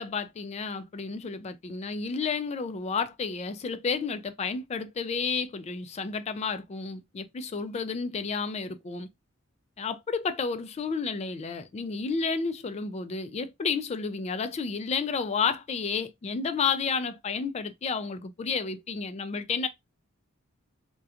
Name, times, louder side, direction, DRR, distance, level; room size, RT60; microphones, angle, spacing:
voice 1, 0.0-9.1 9.8-19.7, left 5 dB, 30° left, 0.3 m, -31 dB
2.8 x 2.2 x 2.4 m
head